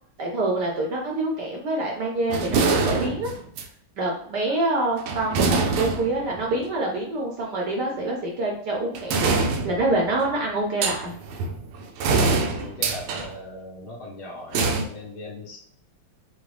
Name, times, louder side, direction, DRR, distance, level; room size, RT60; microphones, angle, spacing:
voice 1, 0.2-3.3 4.0-9.4 9.6-11.1, right 2 dB, 65° right, -1 dB, 1.1 m, -26 dB
sound 1, 2.3-3.6 5.0-6.5 9.0-10.3 10.8-13.3 14.5-14.8, right 4 dB, 80° right, 1.5 m, -24 dB
voice 2, 12.4-15.6, left 2 dB, 75° left, -3 dB, 2.2 m, -39 dB
6.1 x 2.1 x 3.3 m, 0.63 s
omnidirectional pair, 2.4 m